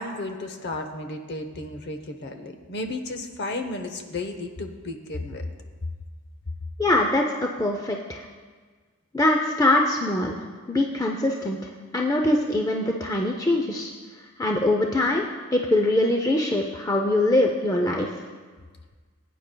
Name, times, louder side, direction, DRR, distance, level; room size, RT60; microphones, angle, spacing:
voice 1, 0.0-5.4, left 2 dB, 50° left, 6 dB, 0.8 m, -33 dB
voice 2, 6.8-8.2 9.1-10.4 10.7-11.6 11.9-13.9 14.4-15.2 15.5-18.1, left 1 dB, 15° left, 1 dB, 0.4 m, -23 dB
17.5 x 9.1 x 2.2 m, 1.5 s
head